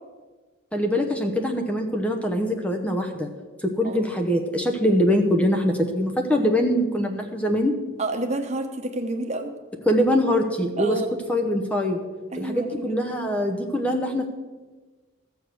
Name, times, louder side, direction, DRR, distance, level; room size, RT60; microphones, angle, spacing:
voice 1, 0.7-3.3 3.6-7.8 9.9-11.0 11.3-12.0 12.3-14.2, equal, 5° left, 3 dB, 0.8 m, -23 dB
voice 2, 3.8-4.1 8.0-9.5 10.8-11.1 12.3-12.9, right 2 dB, 35° right, 4 dB, 1.2 m, -29 dB
14.5 x 7.1 x 6.4 m, 1.3 s
head